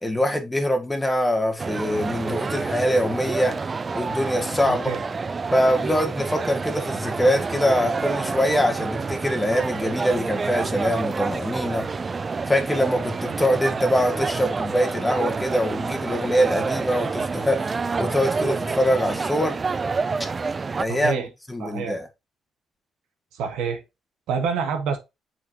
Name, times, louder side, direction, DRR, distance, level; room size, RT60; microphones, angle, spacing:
voice 1, 0.0-3.6 3.9-4.9 5.5-11.9 12.5-19.6 20.8-21.2 21.5-22.1, equal, 10° left, 1.6 m, -23 dB
sound 1, 1.6-20.8, right 4 dB, 35° right, 0.3 m, -28 dB
voice 2, 4.7-5.0 20.9-21.3 21.6-22.0 23.3-23.8 24.3-25.0, right 6 dB, 90° right, 1.5 m, -27 dB
7.2 x 4.7 x 2.9 m
cardioid pair, 90°, 0 cm